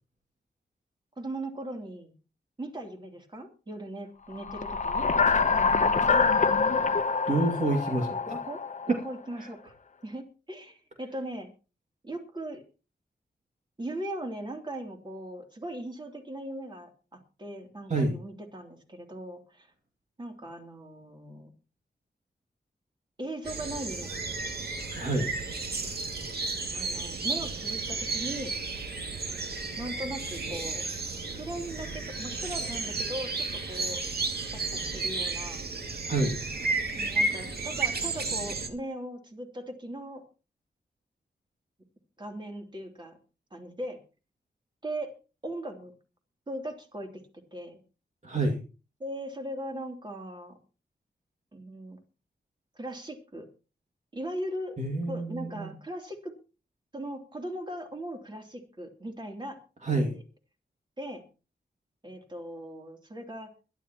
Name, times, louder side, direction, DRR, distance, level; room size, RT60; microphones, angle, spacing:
voice 1, 1.2-2.2 2.6-5.1 5.5-5.7 6.1-6.3 7.3-8.0 8.3-9.7 10.0-11.5 12.0-12.6 13.8-19.7 20.2-21.5 23.2-24.5 26.7-28.6 29.8-30.8 31.4-34.0 34.5-35.7 36.9-40.2 42.2-43.2 43.5-44.0 44.8-45.1 45.4-45.9 46.5-47.2 47.5-47.8 49.0-50.6 51.5-52.0 52.7-53.5 54.1-54.8 55.1-56.3 56.9-59.6 59.9-60.2 61.0-61.2 62.0-63.5, right 1 dB, 25° right, 3 dB, 3.1 m, -39 dB
sound 1, 4.4-9.1, left 4 dB, 45° left, 0.9 m, -25 dB
voice 2, 7.3-8.2 8.9-9.0 9.4-9.5 17.9-18.1 25.0-25.3 36.0-36.3 48.2-48.6 54.8-55.7 59.8-60.1, right 2 dB, 45° right, 1 dB, 2.4 m, -27 dB
sound 2, 23.4-38.7, right 3 dB, 65° right, 2.3 m, -33 dB
22.0 x 12.5 x 3.0 m, 0.33 s
wide cardioid pair, 125°, 17 cm